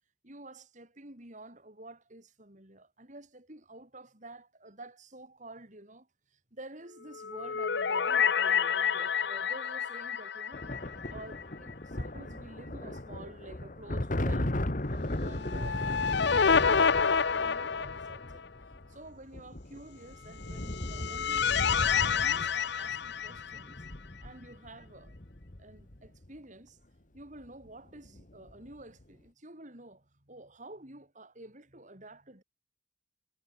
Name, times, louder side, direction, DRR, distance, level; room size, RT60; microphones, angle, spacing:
voice 1, 0.2-10.6 11.1-14.6 14.9-18.4 18.9-21.5 21.9-25.2 25.6-26.8 27.1-32.4, right 1 dB, 40° right, 4.5 m, -50 dB
sound 1, 7.1-11.4 11.7-11.8 15.3-18.5 20.5-23.9, left 6 dB, 60° left, 0.7 m, -29 dB
sound 2, 10.5-26.3 27.4-27.7 28.0-28.7, left 1 dB, 40° left, 1.7 m, -37 dB
head